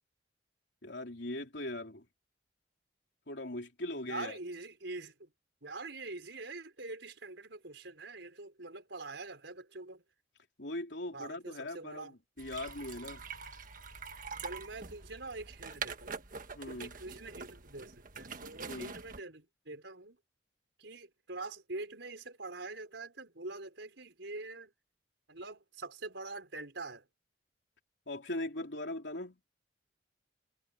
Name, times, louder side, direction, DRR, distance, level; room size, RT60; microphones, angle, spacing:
voice 1, 0.8-2.0 3.3-4.4 10.6-12.1 12.4-13.2 16.6-16.9 18.7-18.9 28.1-29.4, left 1 dB, 70° left, 3.8 m, -40 dB
voice 2, 4.1-5.3 5.6-10.0 11.1-12.1 14.4-16.1 16.7-20.2 20.8-24.7 25.3-27.1, right 3 dB, 70° right, 4.9 m, -44 dB
sound 1, 12.4-19.2, right 5 dB, 45° right, 1.4 m, -45 dB
head